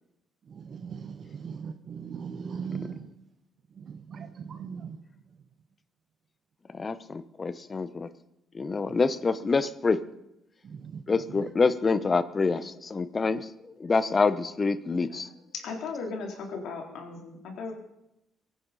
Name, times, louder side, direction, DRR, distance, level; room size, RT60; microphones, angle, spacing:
voice 1, 0.5-3.1 3.8-5.0 10.6-11.0 11.3-11.4, right 6 dB, 55° right, 0.8 m, -39 dB
voice 2, 6.7-8.1 8.5-10.0 11.1-13.5 13.8-15.3, left 4 dB, 35° left, 1.0 m, -26 dB
voice 3, 15.5-17.7, left 4 dB, 70° left, 3.6 m, -36 dB
23.5 x 10.5 x 4.2 m
hypercardioid pair, 55°, 0 cm